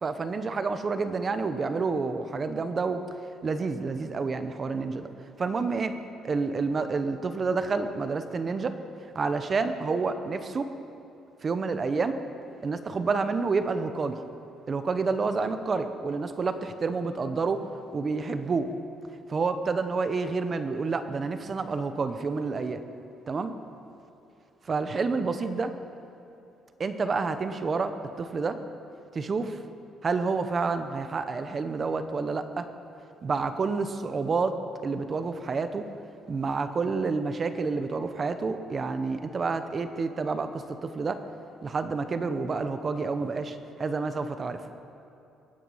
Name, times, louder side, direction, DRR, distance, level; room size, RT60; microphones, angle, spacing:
voice 1, 0.0-3.0 3.4-5.1 5.4-6.0 6.2-8.7 9.1-10.7 11.4-12.2 12.6-14.2 14.7-16.5 16.8-17.7 17.9-18.7 19.3-22.8 23.3-23.5 24.7-25.7 26.8-28.6 29.1-29.6 30.0-32.7 33.2-34.6 34.8-35.9 36.3-41.2 41.6-44.6, right 4 dB, 25° right, 9 dB, 0.8 m, -29 dB
23.0 x 9.1 x 5.6 m, 2.8 s
cardioid pair, 165°, 0 cm